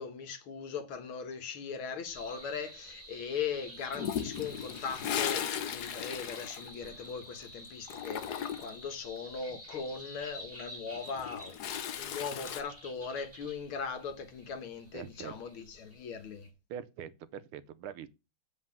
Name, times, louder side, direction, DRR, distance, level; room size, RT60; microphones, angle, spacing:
voice 1, 0.0-16.5, left 6 dB, 80° left, 2.1 m, -39 dB
sound 1, 2.1-16.5, equal, 5° right, 3.1 m, -50 dB
Toilet flush, 3.9-7.4 7.6-8.8 10.9-12.6, left 9 dB, 60° left, 1.2 m, -36 dB
voice 2, 14.9-15.3 16.7-18.1, right 9 dB, 85° right, 1.7 m, -43 dB
7.7 x 4.7 x 7.1 m
omnidirectional pair, 2.3 m